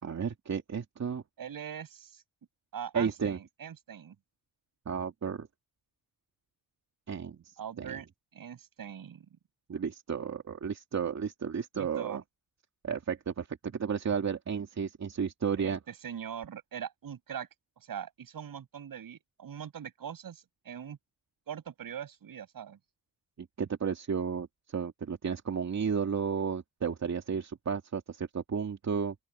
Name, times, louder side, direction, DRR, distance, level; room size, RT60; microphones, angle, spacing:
voice 1, 0.0-1.2 2.9-3.4 4.9-5.5 7.1-8.0 9.7-12.2 12.8-15.8 23.4-29.1, right 6 dB, 45° right, 2.6 m, -33 dB
voice 2, 1.4-2.2 2.7-4.2 7.6-8.1 8.3-9.3 11.8-12.2 15.6-17.5 17.8-21.0 21.5-22.8, right 8 dB, 65° right, 7.4 m, -42 dB
open air
wide cardioid pair, 130°, 37 cm